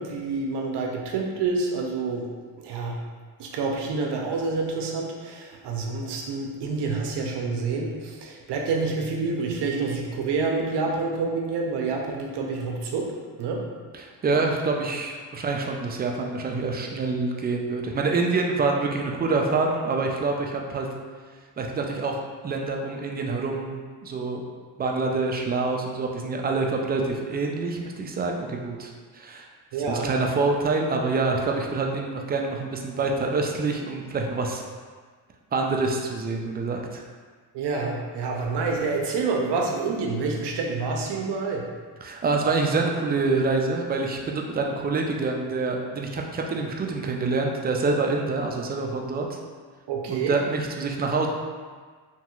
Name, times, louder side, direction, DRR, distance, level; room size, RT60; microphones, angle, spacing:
voice 1, 0.0-2.3 2.6-3.0 3.4-13.7 29.7-30.1 37.5-41.7 49.9-50.4, right 4 dB, 60° right, 0 dB, 0.6 m, -28 dB
voice 2, 14.2-20.9 21.6-24.4 24.8-29.5 29.9-34.6 35.5-37.0 42.0-49.4 50.1-51.3, right 3 dB, 25° right, 1 dB, 0.3 m, -26 dB
2.9 x 2.8 x 2.3 m, 1.5 s
supercardioid pair, 75°, 46 cm